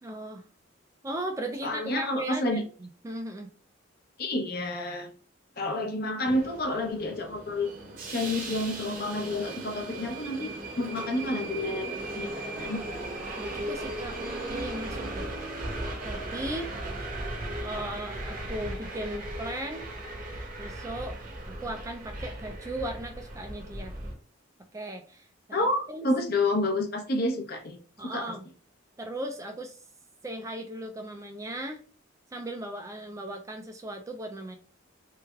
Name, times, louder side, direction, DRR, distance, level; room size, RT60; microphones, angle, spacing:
voice 1, 0.0-0.4 1.0-3.5 13.4-14.2 14.5-15.3 16.0-16.7 17.6-19.9 20.6-21.2 21.5-24.0 24.7-26.1 28.0-28.5 29.0-29.8 30.2-31.8 32.3-34.6, right 1 dB, 15° right, 4 dB, 0.3 m, -37 dB
voice 2, 1.6-2.6 4.2-5.1 5.6-7.7 8.1-12.8 25.5-27.8 28.0-28.3, left 2 dB, 50° left, 4 dB, 0.7 m, -29 dB
Subway metro underground, 6.2-24.1, right 1 dB, 45° right, 0.8 m, -37 dB
3.3 x 3.2 x 2.3 m, 0.39 s
head